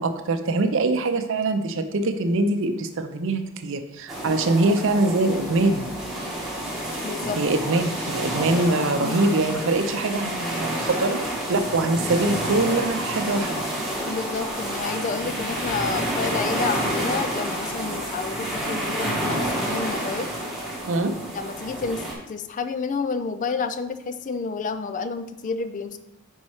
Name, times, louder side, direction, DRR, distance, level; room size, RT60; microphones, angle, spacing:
voice 1, 0.0-5.9 7.4-11.2 11.5-13.6 20.9-21.2, right 2 dB, 60° right, 8 dB, 0.6 m, -23 dB
sound 1, 4.1-22.1, right 1 dB, ahead, 1.4 m, -29 dB
voice 2, 7.0-7.4 9.0-9.3 14.1-20.3 21.3-26.0, left 4 dB, 35° left, 9 dB, 0.3 m, -30 dB
5.4 x 4.2 x 4.7 m, 0.91 s
head